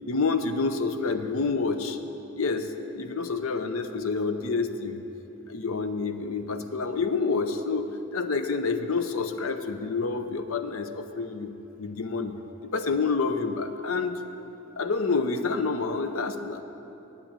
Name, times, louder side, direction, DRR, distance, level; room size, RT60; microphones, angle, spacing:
voice 1, 0.1-2.0 2.4-5.0 5.5-11.5 11.8-12.4 12.6-14.2 14.8-16.6, left 4 dB, 80° left, 9 dB, 0.7 m, -28 dB
8.9 x 8.2 x 8.8 m, 3.0 s
head